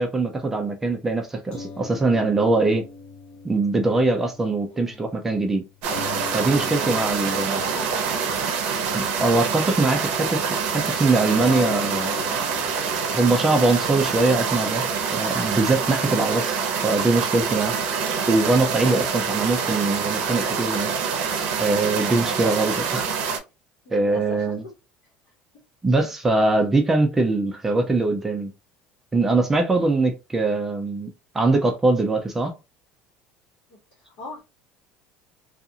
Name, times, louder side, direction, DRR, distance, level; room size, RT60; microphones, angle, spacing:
voice 1, 0.0-2.8 3.4-5.6 6.3-7.6 8.9-12.1 13.1-14.9 15.1-16.6 16.8-17.8 18.3-20.9 21.4-23.1 23.9-24.6 25.8-28.5 29.1-31.1 31.3-32.5, right 3 dB, 10° right, 0.3 m, -22 dB
sound 1, 1.5-10.0 10.3-10.5 11.4-17.9, left 6 dB, 40° left, 0.6 m, -41 dB
voice 2, 4.7-5.0 7.0-8.4 8.9-9.4 9.9-10.2 16.0-16.6 18.8-19.3 22.0-22.5 23.8-24.7 26.0-26.1 33.7-34.4, left 1 dB, 70° left, 1.1 m, -41 dB
sound 2, 5.8-23.4, right 6 dB, 55° right, 0.6 m, -26 dB
2.4 x 2.4 x 2.6 m
cardioid pair, 180°, 3 cm